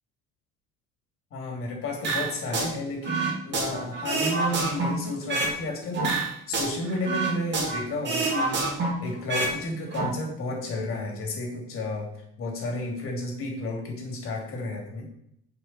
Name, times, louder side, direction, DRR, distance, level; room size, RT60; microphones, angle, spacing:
voice 1, 1.3-12.1 12.4-15.1, left 2 dB, 45° left, 0 dB, 3.1 m, -32 dB
sound 1, 2.0-2.7 3.0-5.6 5.9-9.5 9.8-10.0, right 3 dB, 35° right, 2.5 m, -27 dB
7.5 x 5.8 x 7.6 m, 0.74 s
cardioid pair, 170°, 31 cm